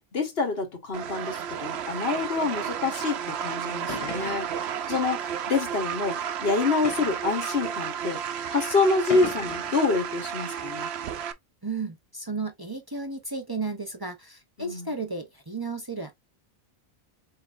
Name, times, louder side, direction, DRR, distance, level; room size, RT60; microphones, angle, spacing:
voice 1, 0.1-8.2 8.5-10.9 14.6-14.9, left 4 dB, 65° left, 1.5 m, -27 dB
sound 1, 0.9-11.3, right 8 dB, 85° right, 0.9 m, -32 dB
sound 2, 3.9-4.7 5.6-5.7 6.8-7.4 8.3-8.4 9.1-9.8, left 3 dB, 35° left, 0.9 m, -37 dB
voice 2, 11.6-16.1, right 3 dB, 25° right, 0.8 m, -33 dB
4.6 x 4.0 x 2.5 m
omnidirectional pair, 1.1 m